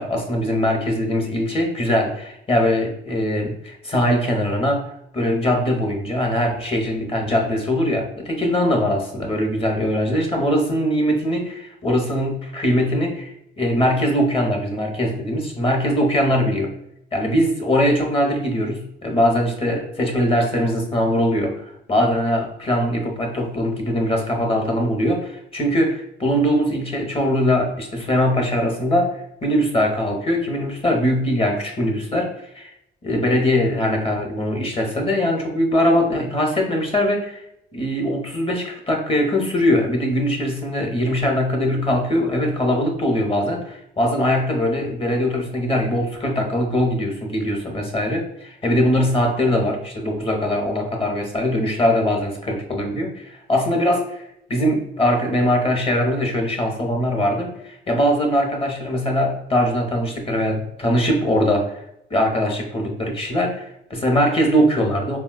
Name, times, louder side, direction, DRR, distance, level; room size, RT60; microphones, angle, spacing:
voice 1, 0.0-4.9 5.1-16.7 17.1-21.6 21.9-32.7 33.0-37.4 37.7-54.2 54.5-61.8 62.1-65.2, equal, 30° left, 2 dB, 0.8 m, -21 dB
4.1 x 2.2 x 2.2 m, 0.75 s
cardioid pair, 90°, 20 cm